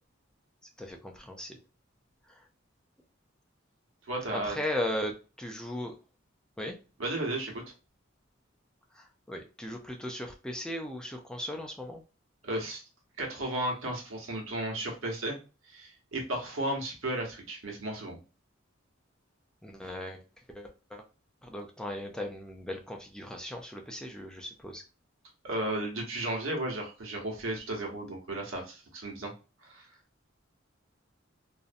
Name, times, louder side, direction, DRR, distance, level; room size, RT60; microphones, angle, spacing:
voice 1, 0.8-1.6 2.3-2.4 4.3-5.9 6.6-6.8 8.9-12.0 19.6-20.2 20.5-21.0 21.4-24.8, left 1 dB, 5° left, 2 dB, 0.3 m, -37 dB
voice 2, 4.1-4.6 7.0-7.6 12.4-12.8 13.2-15.4 15.7-18.2 25.4-29.3 29.6-29.9, right 1 dB, 80° right, 0 dB, 0.9 m, -34 dB
2.5 x 2.0 x 2.5 m, 0.32 s
head